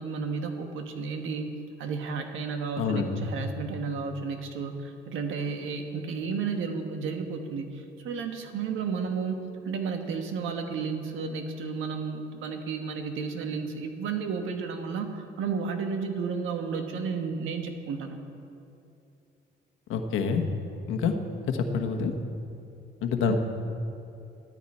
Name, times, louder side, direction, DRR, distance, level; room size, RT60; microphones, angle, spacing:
voice 1, 0.0-18.2 23.3-23.4, right 5 dB, 85° right, 5 dB, 1.3 m, -32 dB
voice 2, 2.8-3.3 19.9-20.4 20.9-21.1 21.5-22.1 23.0-23.3, left 6 dB, 85° left, 5 dB, 1.2 m, -27 dB
15.0 x 13.0 x 4.3 m, 2.7 s
cardioid pair, 90°, 20 cm